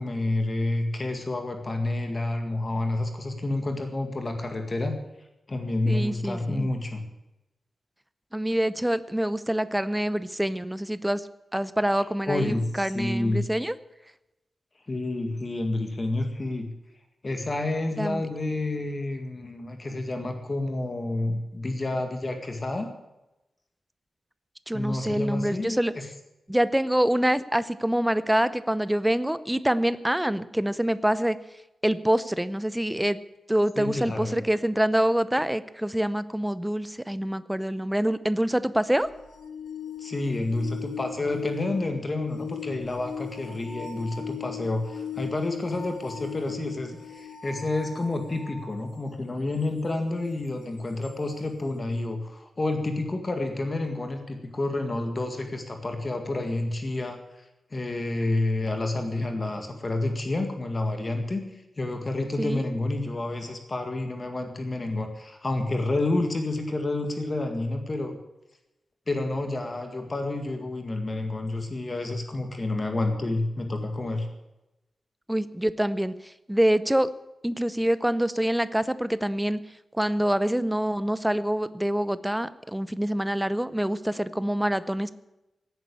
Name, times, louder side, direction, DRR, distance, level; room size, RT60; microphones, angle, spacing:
voice 1, 0.0-5.0 5.5-7.0 12.3-13.5 14.9-16.7 17.2-22.9 24.7-26.0 33.8-34.4 40.0-57.2 57.7-61.4 61.8-68.1 69.1-74.3, left 2 dB, 25° left, 5 dB, 1.9 m, -29 dB
voice 2, 5.9-6.7 8.3-11.3 11.5-13.7 18.0-18.2 24.7-25.9 26.5-31.4 31.8-33.2 33.5-39.1 62.4-62.6 75.3-76.1 76.5-77.1 77.4-79.6 79.9-85.1, right 1 dB, 5° right, 15 dB, 0.6 m, -25 dB
sound 1, 39.0-48.7 51.0-51.1, left 7 dB, 70° left, 2.6 m, -39 dB
17.5 x 9.5 x 8.5 m, 0.95 s
wide cardioid pair, 180°, 0 cm